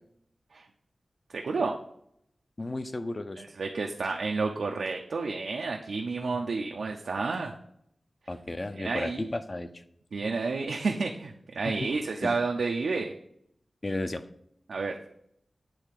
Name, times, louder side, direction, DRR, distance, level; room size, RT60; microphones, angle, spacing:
voice 1, 1.3-1.8 3.4-7.5 8.8-9.3 10.1-13.1 14.7-15.0, right 4 dB, 90° right, 2 dB, 0.5 m, -30 dB
voice 2, 2.6-3.4 8.3-9.7 11.7-11.9 12.2-12.4 13.8-14.3, left 2 dB, 35° left, 9 dB, 0.6 m, -33 dB
8.6 x 3.3 x 4.8 m, 0.72 s
wide cardioid pair, 80°, 0 cm